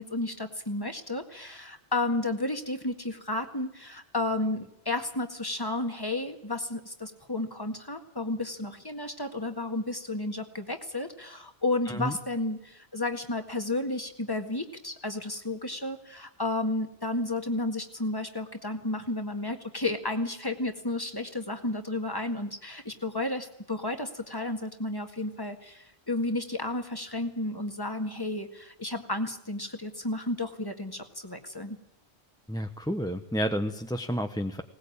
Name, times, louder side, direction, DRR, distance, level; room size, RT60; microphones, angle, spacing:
voice 1, 0.0-31.8, left 2 dB, 20° left, 6 dB, 1.9 m, -32 dB
voice 2, 32.5-34.6, equal, 5° left, 6 dB, 0.9 m, -30 dB
20.0 x 19.0 x 8.7 m, 0.81 s
omnidirectional pair, 1.1 m